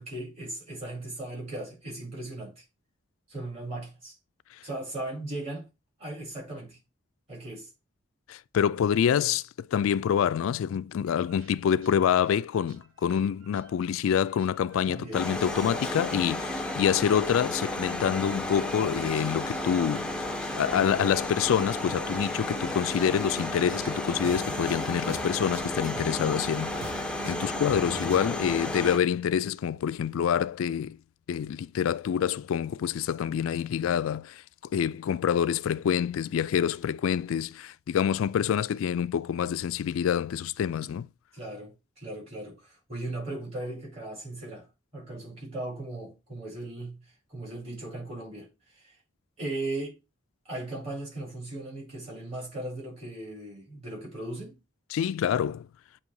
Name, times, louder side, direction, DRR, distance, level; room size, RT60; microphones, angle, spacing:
voice 1, 0.0-2.6 3.3-4.1 4.6-5.7 6.0-6.8 7.3-7.7 14.9-15.2 41.3-44.7 44.9-48.9 49.4-50.0 50.4-54.6, right 2 dB, 30° right, 4.8 m, -38 dB
voice 2, 8.3-20.3 20.5-31.0 31.3-34.4 34.7-41.1 54.9-55.7, left 8 dB, 85° left, 0.3 m, -27 dB
sound 1, 11.1-28.3, right 4 dB, 75° right, 1.0 m, -47 dB
sound 2, 15.1-29.0, left 1 dB, 5° left, 0.5 m, -33 dB
8.2 x 3.0 x 4.6 m
head